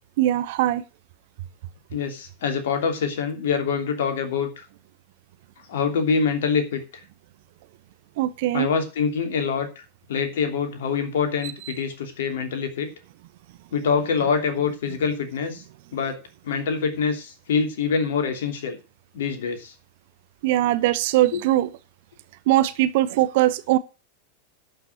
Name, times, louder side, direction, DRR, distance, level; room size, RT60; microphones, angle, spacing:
voice 1, 0.2-0.8 8.2-8.7 20.4-21.7 22.5-23.8, right 14 dB, 50° right, 14 dB, 0.8 m, -21 dB
voice 2, 1.9-4.6 5.7-6.8 8.5-9.7 10.1-12.9 13.7-15.6 15.9-16.2 16.4-18.8 19.1-19.7 21.3-21.4, left 6 dB, 55° left, 5 dB, 3.0 m, -25 dB
11.5 x 5.9 x 7.8 m, 0.32 s
figure-of-eight pair, 90°, 0 cm